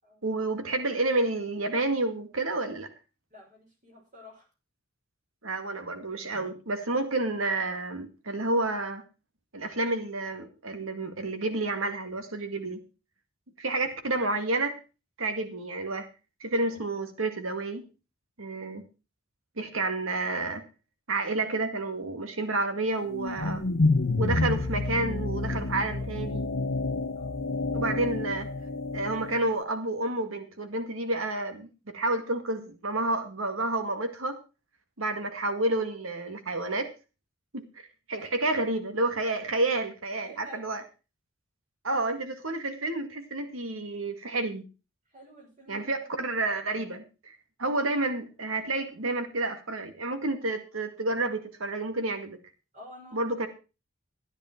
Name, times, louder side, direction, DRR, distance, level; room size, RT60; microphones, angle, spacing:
voice 1, 0.2-2.9 5.4-9.0 9.5-12.8 13.6-14.8 15.2-16.1 16.4-17.8 18.4-18.8 19.6-20.6 21.1-23.6 24.2-26.4 27.7-28.5 28.9-34.4 35.0-36.9 37.5-40.8 41.8-44.6 45.7-52.4 53.1-53.5, right 2 dB, 90° right, 8 dB, 2.0 m, -30 dB
voice 2, 3.3-4.5 13.7-13.8 27.1-27.4 38.2-38.6 40.2-40.6 45.1-46.0 52.7-53.3, equal, 40° right, 1 dB, 5.7 m, -49 dB
sound 1, 23.1-29.4, left 3 dB, 70° left, 1.0 m, -29 dB
13.5 x 10.5 x 4.5 m, 0.31 s
head